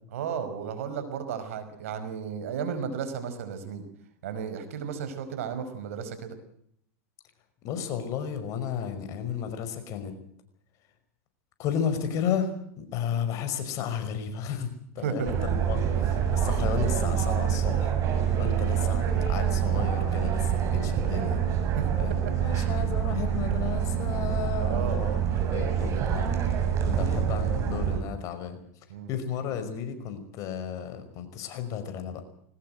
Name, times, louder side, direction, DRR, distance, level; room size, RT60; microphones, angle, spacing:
voice 1, 0.1-3.9 4.2-6.4 15.0-15.3 18.3-18.6 21.8-21.9 24.6-25.0 28.9-29.1, right 7 dB, 75° right, 10 dB, 5.2 m, -33 dB
voice 2, 7.6-10.1 11.6-18.0 18.4-21.4 22.0-25.2 25.5-28.6 29.1-32.2, left 8 dB, 45° left, 9 dB, 5.3 m, -33 dB
sound 1, 15.2-28.0, right 8 dB, 40° right, 7.2 m, -26 dB
22.0 x 19.0 x 7.8 m, 0.68 s
hypercardioid pair, 105°, 8 cm